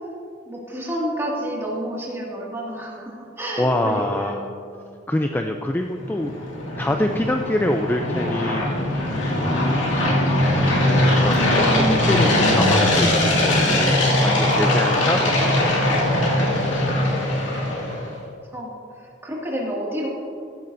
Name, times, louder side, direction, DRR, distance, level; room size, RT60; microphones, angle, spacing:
voice 1, 0.5-5.0 14.8-15.2 17.5-17.8 18.5-20.1, equal, 15° right, -4 dB, 2.0 m, -30 dB
voice 2, 3.6-4.5 5.1-6.3 6.8-8.6 9.5-10.0 11.2-13.9 14.2-16.0, left 1 dB, 10° left, 4 dB, 0.3 m, -25 dB
sound 1, 5.8-18.1, left 1 dB, 85° left, 2.1 m, -20 dB
15.0 x 12.0 x 2.6 m, 2.3 s
head